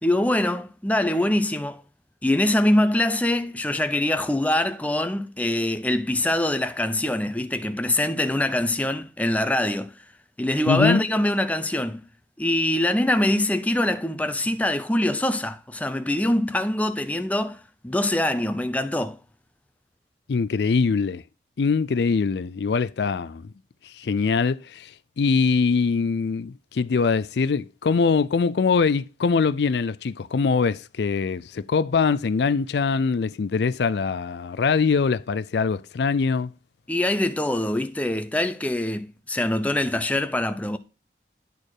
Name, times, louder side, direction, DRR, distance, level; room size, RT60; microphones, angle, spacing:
voice 1, 0.0-1.8 2.2-9.9 10.4-12.0 12.4-19.2 36.9-40.8, left 1 dB, 10° left, 0.6 m, -24 dB
voice 2, 10.7-11.0 20.3-21.2 21.6-23.5 23.8-24.9 25.2-36.5, left 5 dB, 70° left, 0.4 m, -23 dB
10.5 x 4.3 x 4.8 m
head